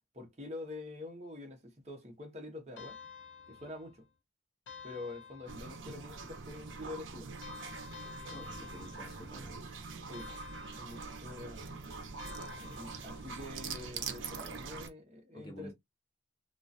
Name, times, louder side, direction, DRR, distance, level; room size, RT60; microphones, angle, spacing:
voice 1, 0.1-3.0 3.5-4.0 4.8-7.3 10.1-10.3 10.7-11.7 12.5-15.7, left 2 dB, 35° right, 0.7 m, -46 dB
sound 1, 2.8-4.1 4.7-6.0 7.4-9.6 10.1-11.4 12.2-13.5, left 6 dB, 75° left, 0.5 m, -50 dB
sound 2, 5.5-14.9, right 5 dB, 80° right, 0.5 m, -44 dB
voice 2, 8.3-9.9 10.2-10.3 12.6-12.8 15.3-15.7, left 1 dB, 25° left, 0.5 m, -50 dB
2.3 x 2.2 x 2.5 m
head